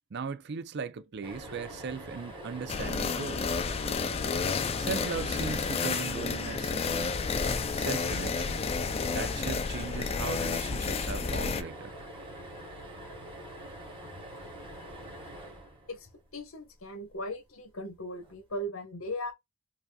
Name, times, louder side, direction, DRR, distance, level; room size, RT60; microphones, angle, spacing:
voice 1, 0.1-3.5 4.8-7.1 7.7-8.7 9.1-12.0, right 5 dB, 55° right, 0.5 m, -38 dB
sound 1, 1.2-16.5 18.2-18.3 18.6-18.7, right 1 dB, 25° right, 1.6 m, -45 dB
sound 2, 2.7-11.6, left 5 dB, 30° left, 0.4 m, -31 dB
voice 2, 16.3-19.3, equal, 90° left, 1.2 m, -38 dB
4.9 x 2.7 x 2.3 m
head